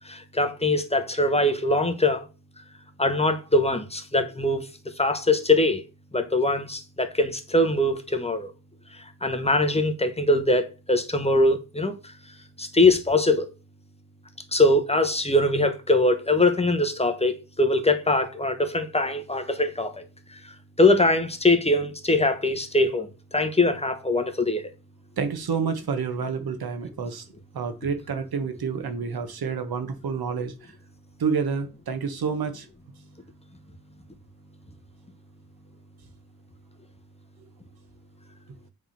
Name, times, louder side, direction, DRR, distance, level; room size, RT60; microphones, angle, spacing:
voice 1, 0.0-2.3 3.0-4.7 5.0-5.8 6.1-8.5 9.2-12.0 12.6-13.5 14.5-20.1 20.3-24.7, left 2 dB, 15° left, 1.0 m, -22 dB
voice 2, 25.2-27.2 27.5-30.7 31.2-32.7, right 5 dB, 85° right, 1.3 m, -29 dB
8.0 x 3.7 x 5.7 m
wide cardioid pair, 125°, 36 cm